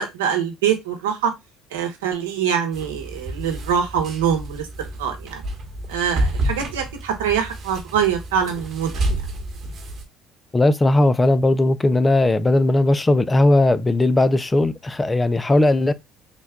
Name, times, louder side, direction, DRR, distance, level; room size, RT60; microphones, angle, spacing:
voice 1, 0.0-1.3 1.7-4.7 5.0-5.4 5.9-8.9, right 8 dB, 90° right, 0.8 m, -24 dB
sound 1, 2.7-10.0, right 1 dB, 50° right, 1.1 m, -29 dB
voice 2, 10.5-15.9, left 2 dB, 20° left, 0.4 m, -17 dB
3.8 x 2.2 x 3.5 m
hypercardioid pair, 70°, 0 cm